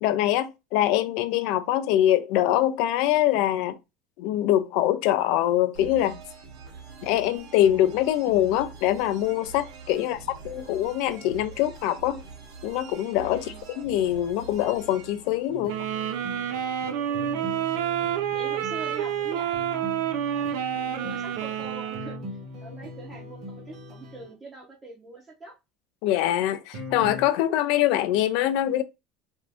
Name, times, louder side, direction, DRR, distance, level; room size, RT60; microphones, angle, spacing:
voice 1, 0.0-3.8 4.2-6.2 7.0-12.2 12.6-15.7 26.0-28.8, left 12 dB, 60° left, 0.4 m, -24 dB
sound 1, 5.7-16.3, right 6 dB, 65° right, 0.9 m, -44 dB
voice 2, 13.3-13.7 15.5-15.9 17.0-17.5 18.3-25.5, right 2 dB, 20° right, 0.6 m, -44 dB
sound 2, 15.5-24.3 26.7-27.3, left 2 dB, 45° right, 0.9 m, -41 dB
sound 3, 15.7-22.2, right 10 dB, 90° right, 0.5 m, -29 dB
2.6 x 2.5 x 3.3 m
cardioid pair, 160°, 0 cm